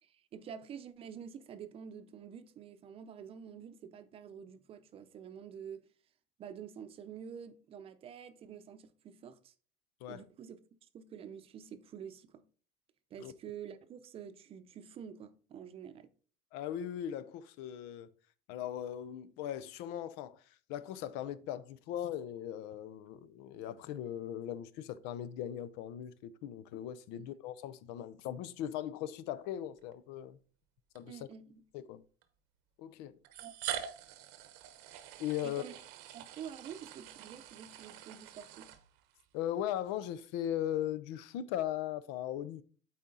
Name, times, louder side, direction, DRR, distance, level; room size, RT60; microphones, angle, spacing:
voice 1, 0.0-5.8 6.4-9.5 10.0-10.6 10.9-12.4 13.1-16.1 27.1-27.2 31.1-31.6 33.4-33.5 35.4-35.7 36.1-38.7, right 8 dB, 35° right, 0.6 m, -48 dB
voice 2, 16.5-18.1 18.5-30.4 30.9-31.2 31.7-32.0 32.8-33.2 35.2-35.6 39.3-42.6, left 11 dB, 85° left, 0.6 m, -39 dB
sound 1, 29.8-29.9 31.0-31.1 32.2-32.3 33.2-39.2, right 10 dB, 90° right, 1.0 m, -45 dB
8.5 x 4.3 x 3.9 m
cardioid pair, 160°, 17 cm